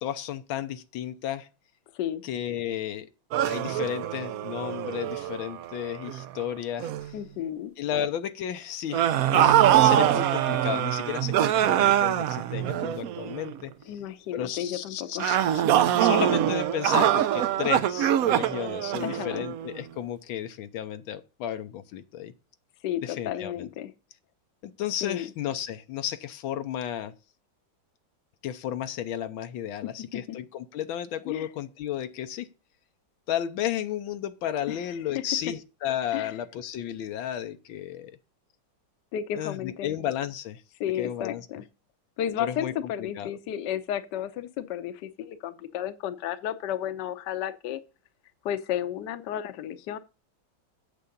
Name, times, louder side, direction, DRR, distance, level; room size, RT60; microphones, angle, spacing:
voice 1, 0.0-1.5 2.2-3.1 3.4-7.1 7.8-13.7 14.3-15.6 16.0-22.3 23.0-23.7 24.6-27.1 28.4-32.5 33.3-38.2 39.4-40.6 41.0-41.5 42.4-42.7 43.0-43.3, left 10 dB, 85° left, 1.5 m, -33 dB
sound 1, 3.3-6.4 6.8-7.1 8.9-13.5 15.2-19.8, right 11 dB, 80° right, 0.8 m, -24 dB
voice 2, 7.1-7.7 13.9-15.4 15.9-16.0 19.0-19.4 22.8-23.9 25.0-25.3 29.8-30.4 31.3-31.5 34.7-34.8 35.1-35.2 36.1-36.3 39.1-40.0 40.8-41.6 42.2-47.8 48.4-50.0, left 10 dB, 65° left, 1.3 m, -33 dB
8.5 x 6.8 x 5.2 m
omnidirectional pair, 2.2 m